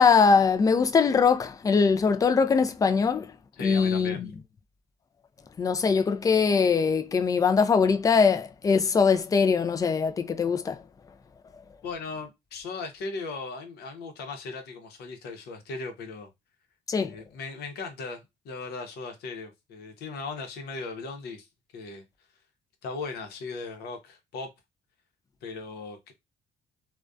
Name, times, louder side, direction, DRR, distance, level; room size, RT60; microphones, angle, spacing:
voice 1, 0.0-3.3 3.6-4.3 5.6-10.8 16.9-17.1, left 5 dB, 20° left, 0.3 m, -22 dB
voice 2, 3.6-4.2 11.8-16.3 17.0-21.5 21.7-22.0 22.8-24.5 25.4-26.1, left 4 dB, 70° left, 0.8 m, -37 dB
2.4 x 2.2 x 2.3 m
cardioid pair, 110°, 17 cm